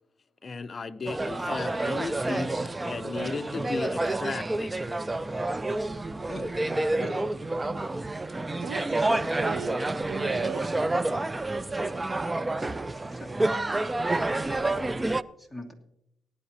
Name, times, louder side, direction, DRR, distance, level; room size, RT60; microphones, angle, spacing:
voice 1, 0.4-2.6 2.9-4.7, left 4 dB, 35° left, 10 dB, 0.7 m, -35 dB
sound 1, 1.1-15.2, right 2 dB, 20° right, 0.4 m, -29 dB
voice 2, 6.3-7.2 13.1-13.3 15.4-15.7, left 1 dB, ahead, 2 dB, 2.6 m, -40 dB
voice 3, 8.6-10.8, right 6 dB, 70° right, 6 dB, 1.0 m, -37 dB
18.5 x 11.0 x 2.9 m, 0.81 s
cardioid pair, 90°, 0 cm